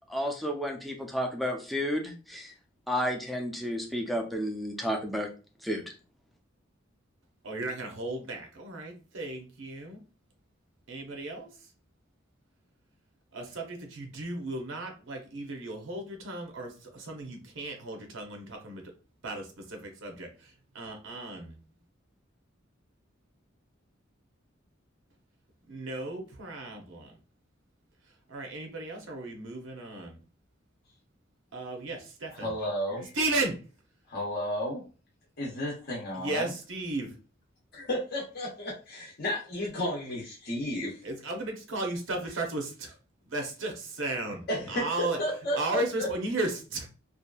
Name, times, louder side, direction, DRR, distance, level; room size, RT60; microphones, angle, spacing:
voice 1, 0.1-2.5 2.9-5.3 5.6-5.8, equal, ahead, 1 dB, 0.4 m, -31 dB
voice 2, 7.4-10.0 10.9-11.5 13.3-18.8 19.2-21.6 25.7-27.1 28.3-30.2 31.5-32.5 33.1-33.6 36.1-37.2 41.0-43.0 43.2-45.2 45.5-46.9, right 2 dB, 80° right, 3 dB, 0.7 m, -35 dB
voice 3, 32.3-33.1 34.1-34.8 35.4-36.5 37.7-41.0 44.5-46.1, equal, 55° left, -3 dB, 0.7 m, -33 dB
2.7 x 2.4 x 2.3 m, 0.35 s
head